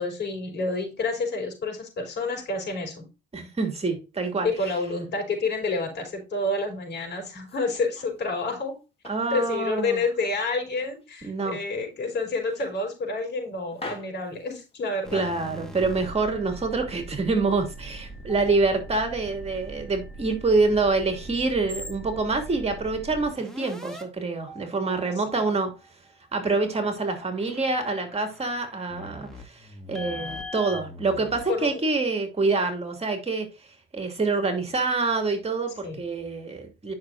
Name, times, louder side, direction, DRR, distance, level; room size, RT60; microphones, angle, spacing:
voice 1, 0.0-3.0 3.4-3.5 4.4-8.7 9.3-15.2 31.5-31.7 35.8-36.0, left 3 dB, 60° left, 4.6 m, -29 dB
voice 2, 3.3-4.5 9.0-10.0 11.2-11.6 15.1-25.7 26.3-33.5 33.9-36.9, right 3 dB, 30° right, 2.7 m, -26 dB
sound 1, 7.2-8.7 9.0-10.4 10.8-11.6 12.0-12.2 12.6-13.4 13.7-15.2, left 2 dB, 30° left, 2.6 m, -44 dB
sound 2, 15.0-24.0 24.5-25.9 26.3-31.7, right 1 dB, ahead, 2.4 m, -41 dB
10.5 x 6.1 x 2.6 m
cardioid pair, 90°, 20 cm